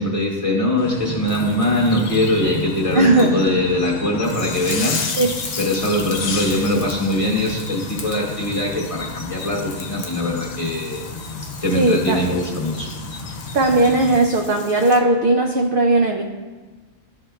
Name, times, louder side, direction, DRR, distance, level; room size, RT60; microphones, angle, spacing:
voice 1, 0.0-5.0 5.6-11.0 11.4-12.9, left 1 dB, 25° left, -3 dB, 1.0 m, -22 dB
sound 1, 0.8-14.2, left 4 dB, 75° left, 1.1 m, -31 dB
sound 2, 1.3-3.4 4.2-15.0, left 4 dB, 55° left, 0.4 m, -37 dB
voice 2, 2.9-3.3 5.1-5.3 11.7-12.2 13.5-16.2, right 2 dB, 65° right, 2 dB, 0.5 m, -17 dB
11.0 x 3.8 x 2.3 m, 1.4 s
omnidirectional pair, 1.4 m